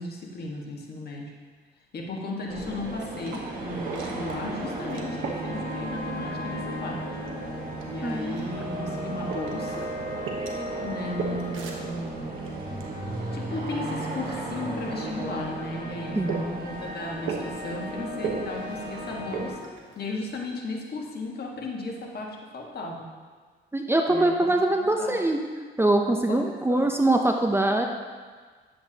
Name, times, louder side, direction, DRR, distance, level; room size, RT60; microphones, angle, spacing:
voice 1, 0.0-1.3 1.9-7.0 7.9-9.9 10.8-12.3 13.3-16.2 16.4-19.7 19.9-23.1 24.1-24.5 25.0-25.1 26.3-26.8, left 2 dB, 55° left, -1 dB, 1.5 m, -35 dB
sound 1, 2.5-19.5, right 1 dB, 45° right, 1.7 m, -34 dB
sound 2, 2.8-20.6, right 5 dB, 80° right, 1.2 m, -40 dB
voice 2, 8.0-9.0 16.1-16.6 23.7-25.4 25.8-27.9, right 2 dB, 10° right, 3 dB, 0.6 m, -24 dB
10.0 x 7.7 x 2.8 m, 1.5 s
cardioid pair, 90°, 20 cm